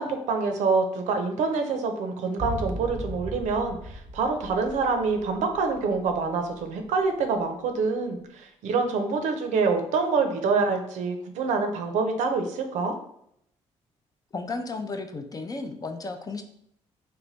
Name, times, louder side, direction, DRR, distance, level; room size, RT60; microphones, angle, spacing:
voice 1, 0.0-12.9, right 4 dB, 80° right, 5 dB, 0.5 m, -26 dB
sound 1, 2.4-6.6 6.9-7.0, equal, 10° right, 0.8 m, -37 dB
voice 2, 14.3-16.4, left 3 dB, 30° left, 6 dB, 0.5 m, -33 dB
3.2 x 2.2 x 3.9 m, 0.72 s
supercardioid pair, 70°, 12 cm